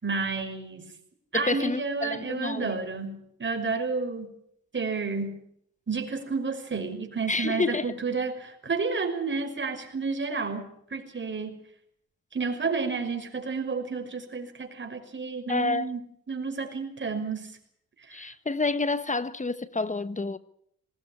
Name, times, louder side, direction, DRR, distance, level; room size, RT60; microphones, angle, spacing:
voice 1, 0.0-0.9 1.3-4.3 4.7-5.4 5.9-11.6 12.3-16.0 16.3-17.5 18.1-18.2, right 4 dB, 35° right, 5.8 m, -31 dB
voice 2, 1.3-2.7 7.3-7.9 15.5-15.9 18.1-20.4, left 3 dB, 20° left, 1.3 m, -29 dB
20.0 x 17.5 x 8.9 m
supercardioid pair, 65°, 33 cm